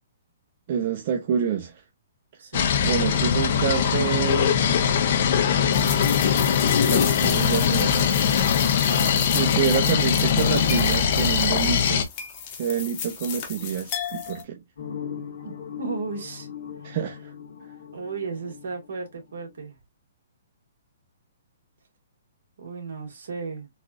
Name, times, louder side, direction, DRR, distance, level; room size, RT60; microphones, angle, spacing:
voice 1, 0.7-1.8 2.8-4.6 6.9-8.1 9.3-12.1 12.6-14.6 16.8-17.3, right 8 dB, 40° right, 0.6 m, -27 dB
voice 2, 2.4-2.7 8.9-9.4 15.4-16.5 16.8-17.0 17.9-19.7 22.6-23.7, right 4 dB, 70° right, 1.7 m, -35 dB
sound 1, 2.5-12.0, left 7 dB, 50° left, 0.5 m, -21 dB
sound 2, 5.7-14.4, left 7 dB, 30° left, 0.8 m, -34 dB
sound 3, 14.8-19.5, left 8 dB, 75° left, 1.3 m, -39 dB
4.0 x 2.4 x 2.5 m
hypercardioid pair, 160°, 0 cm